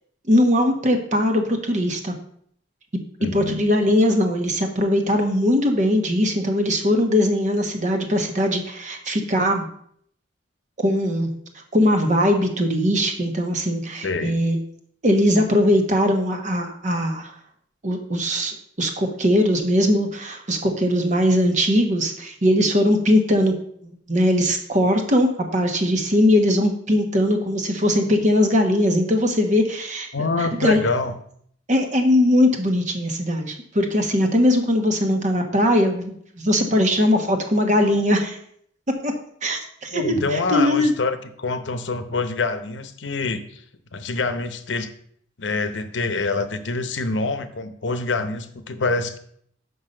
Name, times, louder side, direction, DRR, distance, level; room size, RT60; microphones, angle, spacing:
voice 1, 0.3-2.1 3.3-9.7 10.8-11.3 11.5-14.6 15.0-17.3 17.8-23.5 24.1-30.1 30.4-30.8 31.7-38.4 39.0-39.1 39.4-40.9, left 1 dB, 40° right, 4 dB, 1.2 m, -20 dB
voice 2, 3.2-3.6 14.0-14.4 30.1-31.1 39.9-43.6 43.9-44.9 45.4-49.2, left 3 dB, 70° left, 9 dB, 0.8 m, -26 dB
5.8 x 5.6 x 6.6 m, 0.66 s
head